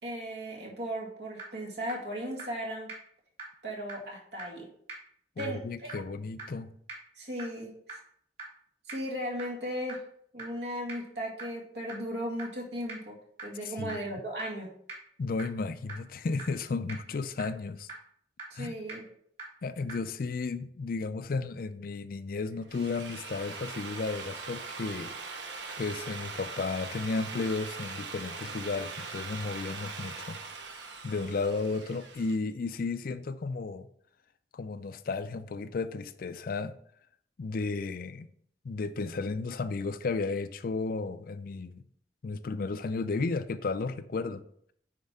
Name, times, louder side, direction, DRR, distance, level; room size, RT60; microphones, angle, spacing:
voice 1, 0.0-2.9 3.6-4.7 5.4-5.9 7.2-7.7 8.9-10.0 10.3-13.2 13.4-14.7 18.5-19.0, equal, 65° right, 2.0 m, -36 dB
sound 1, 0.9-1.0 1.4-1.5 1.9-2.0 2.4-2.5 2.9-3.0 3.4-3.5 3.9-4.0 4.4-4.5 4.9-5.0 5.4-5.5 5.9-6.0 6.4-6.5 6.9-7.0 7.4-7.5 7.9-8.0 8.4-8.5 8.9-9.0 9.4-9.5 9.9-10.0 10.4-10.5 10.9-11.0 11.4-11.5 11.9-12.0 12.4-12.5 12.9-13.0 13.4-13.5 13.9-14.0 14.4-14.5 14.9-15.0 15.4-15.5 15.9-16.0 16.4-16.5 16.9-17.0 17.4-17.5 17.9-18.0 18.4-18.5 18.9-19.0 19.4-19.5 19.9-20.0, right 3 dB, 40° right, 2.9 m, -40 dB
voice 2, 5.4-6.7 13.6-14.0 15.2-17.9 18.5-18.7 19.6-25.1 25.8-30.4 31.0-33.9 34.5-36.8 37.4-38.3 38.6-41.8 42.2-44.4, left 4 dB, 55° left, 0.4 m, -33 dB
Drill, 22.5-32.4, right 4 dB, 90° right, 0.8 m, -41 dB
9.5 x 4.4 x 3.6 m
head